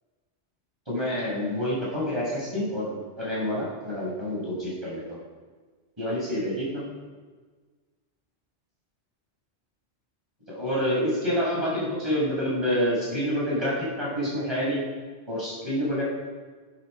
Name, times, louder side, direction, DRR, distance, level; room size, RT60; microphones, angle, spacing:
voice 1, 0.9-5.2 6.0-6.8 10.5-14.8 15.3-16.0, equal, 20° right, -6 dB, 6.0 m, -28 dB
15.0 x 9.8 x 6.5 m, 1.4 s
omnidirectional pair, 1.2 m